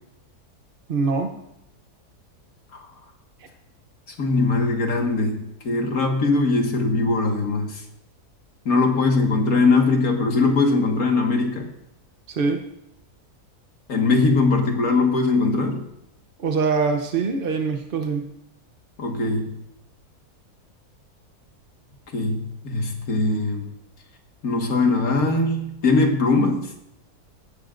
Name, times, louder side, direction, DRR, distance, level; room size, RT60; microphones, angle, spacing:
voice 1, 0.9-1.4 12.3-12.6 16.4-18.3, right 4 dB, 50° right, 5 dB, 0.8 m, -23 dB
voice 2, 4.1-7.8 8.7-11.7 13.9-15.9 19.0-19.6 22.1-23.7 24.4-26.7, left 3 dB, 65° left, 2 dB, 2.0 m, -21 dB
16.5 x 11.0 x 2.5 m, 0.83 s
omnidirectional pair, 1.6 m